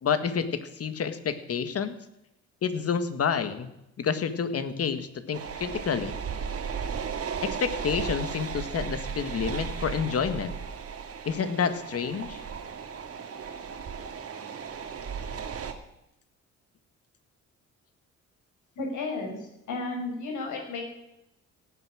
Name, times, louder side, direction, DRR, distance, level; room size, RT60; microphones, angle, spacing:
voice 1, 0.0-1.9 2.6-3.7 4.0-6.1 7.4-10.5 11.2-12.4, left 6 dB, 50° left, 11 dB, 1.7 m, -29 dB
sound 1, 5.3-15.7, right 6 dB, 50° right, 2.1 m, -35 dB
voice 2, 18.8-19.4 19.7-20.8, left 3 dB, 75° left, 2 dB, 5.7 m, -32 dB
17.5 x 9.7 x 6.3 m, 0.84 s
cardioid pair, 90°, 30 cm